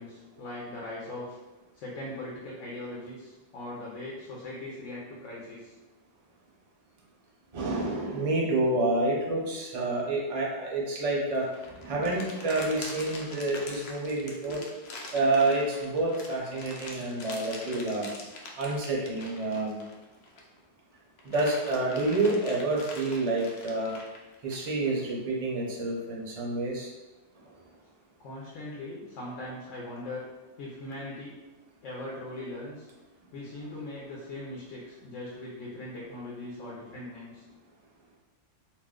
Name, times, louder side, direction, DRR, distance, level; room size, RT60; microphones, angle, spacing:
voice 1, 0.0-1.4 1.7-5.7 28.2-30.2 30.6-31.3 31.8-32.9 33.3-37.4, left 1 dB, 90° left, -4 dB, 1.0 m, -40 dB
voice 2, 7.5-11.5 11.8-14.6 15.1-18.1 18.6-19.8 21.2-23.9 24.4-26.9, right 2 dB, 45° right, -3 dB, 0.5 m, -28 dB
sound 1, 11.3-20.6 21.0-25.1, left 2 dB, 65° left, 0.7 m, -44 dB
2.5 x 2.2 x 3.5 m, 1.1 s
omnidirectional pair, 1.2 m